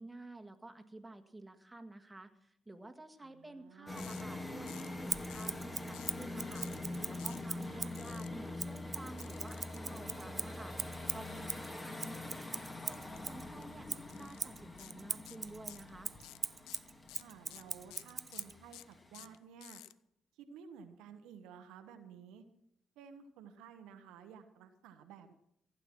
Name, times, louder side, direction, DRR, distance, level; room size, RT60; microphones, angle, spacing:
voice 1, 0.0-6.7 7.0-12.5 12.8-16.1, right 2 dB, 15° right, 6 dB, 1.7 m, -51 dB
voice 2, 3.2-4.2 7.7-7.9 17.2-19.8 20.3-22.4 23.0-25.3, right 7 dB, 75° right, 8 dB, 1.0 m, -54 dB
sound 1, 3.9-19.4, left 2 dB, 25° left, 2.6 m, -45 dB
sound 2, 4.0-4.2 4.7-5.0 5.3-5.6 5.9-6.2 6.5-6.8 7.2-7.4 8.0-8.3 9.2-9.8 12.9-13.2 13.5-13.6 14.1-14.4 14.8-14.9 15.3-15.9 16.2-19.9, left 15 dB, 75° left, 0.4 m, -53 dB
Scissors, 5.1-8.0 8.6-13.5 13.9-18.6, right 4 dB, 35° right, 0.6 m, -41 dB
15.5 x 9.1 x 6.1 m, 0.73 s
hypercardioid pair, 50°, 0 cm